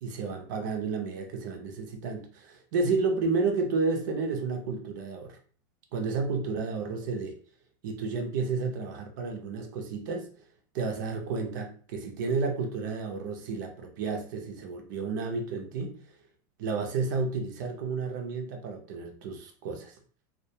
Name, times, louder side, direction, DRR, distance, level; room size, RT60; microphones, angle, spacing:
voice 1, 0.0-5.4 5.9-7.4 7.8-10.3 10.7-16.0 16.6-19.9, right 4 dB, 75° right, 3 dB, 0.6 m, -31 dB
2.3 x 2.2 x 2.7 m, 0.42 s
supercardioid pair, 180°, 10 cm